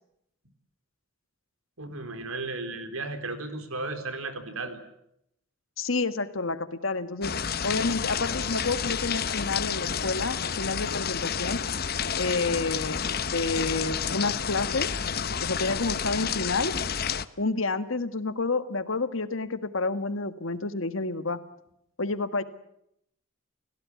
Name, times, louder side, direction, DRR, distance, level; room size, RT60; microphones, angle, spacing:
voice 1, 1.8-4.8, right 2 dB, 85° right, 9 dB, 4.0 m, -34 dB
voice 2, 5.8-7.3 7.6-11.6 12.2-14.9 15.4-16.8 17.4-21.4 22.0-22.4, left 3 dB, 70° left, 11 dB, 1.7 m, -29 dB
sound 1, 7.2-17.3, left 7 dB, 45° left, 0.9 m, -30 dB
30.0 x 17.0 x 9.5 m, 0.78 s
head